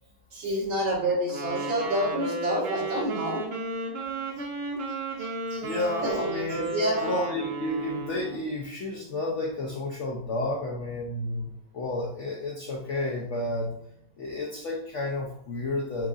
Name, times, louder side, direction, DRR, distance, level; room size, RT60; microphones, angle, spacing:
voice 1, 0.3-3.4 4.0-4.1 6.0-6.1 6.7-7.1, right 1 dB, 85° right, -6 dB, 2.5 m, -28 dB
Wind instrument woodwind instrument, 1.3-8.5, right 2 dB, 65° right, 1.7 m, -34 dB
voice 2, 5.2-11.5 11.7-13.7 14.2-16.1, left 2 dB, 75° left, -2 dB, 0.7 m, -31 dB
7.7 x 2.6 x 2.4 m, 0.70 s
omnidirectional pair, 2.1 m